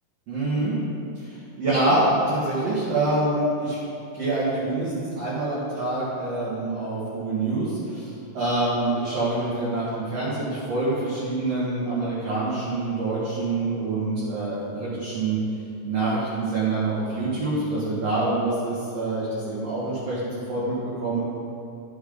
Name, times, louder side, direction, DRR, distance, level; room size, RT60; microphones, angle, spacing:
voice 1, 0.3-0.8 1.2-3.8 4.1-15.4 15.8-20.7 21.0-21.2, right 2 dB, 45° right, -10 dB, 2.7 m, -26 dB
12.5 x 8.4 x 4.0 m, 2.6 s
omnidirectional pair, 4.7 m